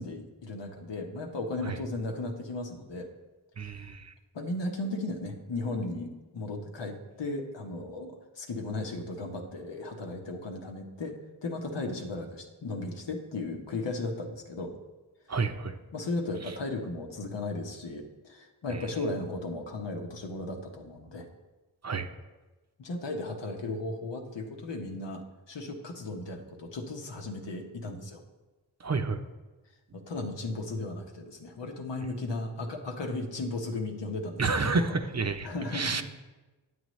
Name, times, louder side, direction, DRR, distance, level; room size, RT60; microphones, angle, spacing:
voice 1, 0.0-3.1 3.6-3.7 4.3-11.2 11.4-14.7 15.9-21.3 22.8-28.2 29.9-34.4 34.7-34.8 35.4-36.0, left 2 dB, 90° left, 2 dB, 1.0 m, -35 dB
voice 2, 3.6-4.1 15.3-15.8 18.7-18.8 21.8-22.1 28.8-29.2 34.4-36.0, right 4 dB, 40° right, 8 dB, 0.7 m, -30 dB
9.5 x 7.8 x 3.1 m, 1.2 s
cardioid pair, 45°, 41 cm